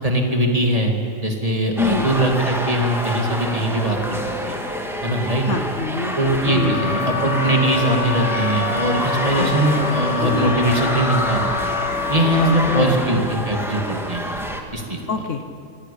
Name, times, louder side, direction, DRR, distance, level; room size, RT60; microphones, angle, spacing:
voice 1, 0.0-0.9 1.2-4.2 4.5-4.6 5.0-5.4 6.1-11.7 12.1-14.3 14.7-15.0, right 1 dB, 25° right, 1 dB, 2.5 m, -21 dB
sound 1, 1.8-14.6, equal, ahead, 1.9 m, -27 dB
voice 2, 5.4-6.1 6.4-6.9 9.4-9.8 12.3-12.9 15.1-15.4, left 4 dB, 60° left, 7 dB, 1.3 m, -25 dB
Wind instrument woodwind instrument, 6.5-13.0, left 5 dB, 35° left, 0.7 m, -26 dB
26.0 x 16.5 x 8.6 m, 2.4 s
omnidirectional pair, 1.5 m